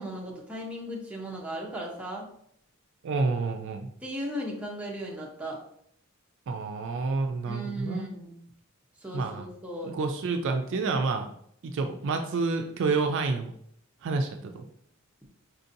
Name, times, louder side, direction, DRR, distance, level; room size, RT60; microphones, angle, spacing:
voice 1, 0.0-2.3 4.0-5.6 7.5-8.4 9.0-9.9, equal, 5° right, -2 dB, 0.7 m, -36 dB
voice 2, 3.0-3.9 6.5-8.1 9.1-9.5 9.8-11.3 11.6-13.5 14.0-14.6, right 4 dB, 60° right, 5 dB, 0.4 m, -29 dB
4.3 x 2.7 x 2.6 m, 0.69 s
head